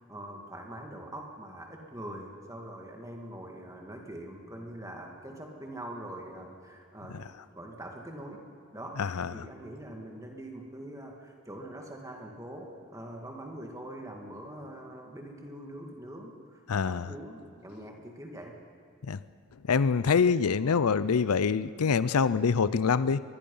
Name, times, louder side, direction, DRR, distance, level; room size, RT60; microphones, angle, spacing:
voice 1, 0.0-7.2 7.5-8.4 8.7-9.0 9.3-18.6, right 1 dB, 15° right, 2 dB, 2.1 m, -43 dB
voice 2, 9.0-9.4 16.7-17.1 19.0-19.2 19.7-23.2, left 5 dB, 85° left, 17 dB, 0.5 m, -25 dB
24.0 x 20.5 x 5.6 m, 2.5 s
head